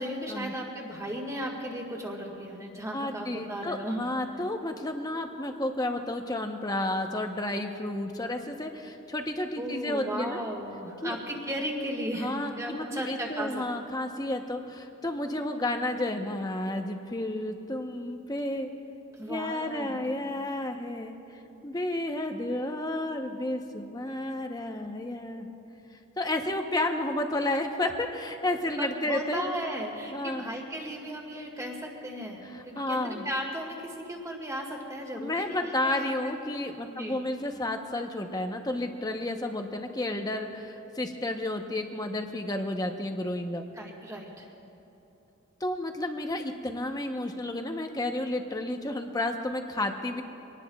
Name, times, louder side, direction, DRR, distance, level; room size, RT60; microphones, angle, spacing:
voice 1, 0.0-4.0 9.6-13.6 19.2-20.1 28.8-36.3 37.0-37.2 43.7-44.5, equal, 15° right, 0 dB, 2.0 m, -35 dB
voice 2, 2.9-10.4 11.0-11.2 12.1-18.7 19.3-25.5 26.2-29.4 30.1-30.5 32.4-33.2 35.2-43.6 45.6-50.2, left 1 dB, 20° left, 4 dB, 0.9 m, -31 dB
24.5 x 19.0 x 2.4 m, 3.0 s
head